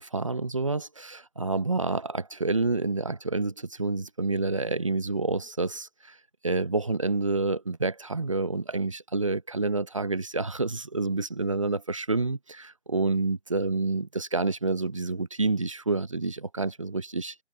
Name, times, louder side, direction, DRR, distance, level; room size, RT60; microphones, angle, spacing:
voice 1, 0.0-6.1 6.4-17.3, right 3 dB, 25° right, 0.9 m, -28 dB
figure-of-eight pair, 165°, 35 cm